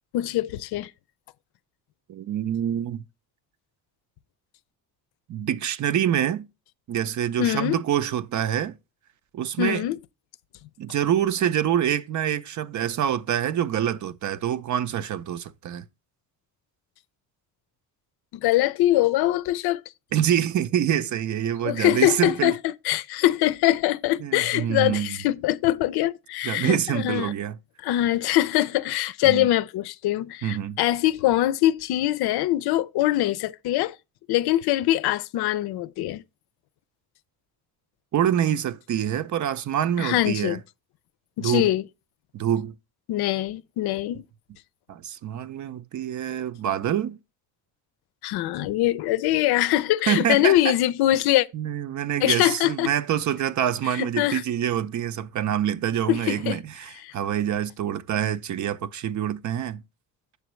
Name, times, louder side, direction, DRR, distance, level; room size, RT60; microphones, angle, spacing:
voice 1, 0.1-0.9 7.4-7.8 9.6-10.0 18.3-19.8 21.6-27.3 27.8-34.0 34.3-36.2 40.0-40.6 41.4-41.8 43.1-44.2 48.2-51.5 52.2-52.9 54.0-54.4 56.1-56.6 57.0-57.1, left 14 dB, 80° left, 0.6 m, -23 dB
voice 2, 2.1-3.0 5.3-6.5 6.9-8.8 9.3-9.8 10.8-15.8 20.1-22.5 24.2-25.1 26.4-27.6 29.2-29.5 30.4-30.8 38.1-40.6 41.4-41.7 42.3-42.7 44.9-47.2 50.1-50.7 51.5-59.8, right 10 dB, 50° right, 0.6 m, -26 dB
8.1 x 6.9 x 3.1 m
cardioid pair, 115°, 38 cm